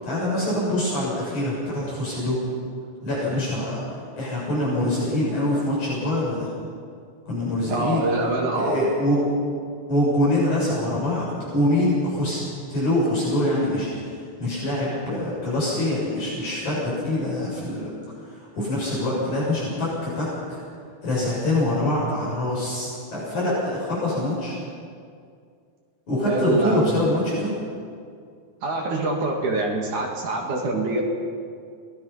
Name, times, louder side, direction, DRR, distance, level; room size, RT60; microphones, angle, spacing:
voice 1, 0.0-2.4 3.0-6.5 7.3-8.0 8.5-9.2 9.9-12.4 12.7-17.9 18.2-20.6 21.0-24.6 26.1-27.5, left 1 dB, 55° left, -7 dB, 8.8 m, -24 dB
voice 2, 7.7-8.8 26.3-26.9 28.6-31.0, right 2 dB, 55° right, 0 dB, 3.6 m, -25 dB
28.5 x 20.0 x 5.8 m, 2.3 s
omnidirectional pair, 4.2 m